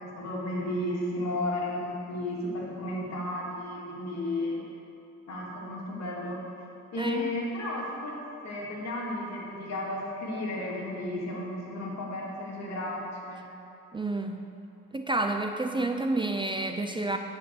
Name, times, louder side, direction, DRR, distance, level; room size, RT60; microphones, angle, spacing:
voice 1, 0.0-4.6 5.3-6.5 6.9-8.2 8.4-13.5, left 1 dB, 60° left, -4 dB, 2.8 m, -33 dB
voice 2, 7.0-7.3 13.9-14.5 14.9-17.2, right 2 dB, 15° right, 5 dB, 0.5 m, -29 dB
9.8 x 5.7 x 8.0 m, 2.8 s
cardioid pair, 90°, 30 cm